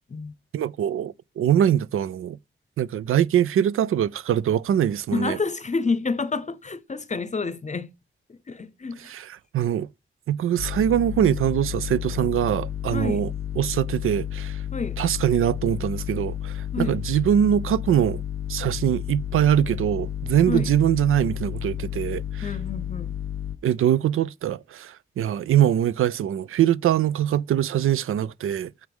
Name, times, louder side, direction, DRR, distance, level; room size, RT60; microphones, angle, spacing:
voice 1, 0.5-2.4 2.8-5.4 9.1-9.2 9.5-9.9 10.3-13.3 13.6-14.6 15.0-18.2 18.5-22.5 23.6-28.7, right 10 dB, 85° right, 0.4 m, -23 dB
voice 2, 5.1-7.9 8.3-9.1 12.9-13.2 14.7-15.0 16.7-17.0 20.5-20.7 22.4-23.2, left 4 dB, 35° left, 0.7 m, -29 dB
sound 1, 10.6-23.6, left 10 dB, 80° left, 0.7 m, -32 dB
9.3 x 7.3 x 3.5 m
cardioid pair, 85°, 21 cm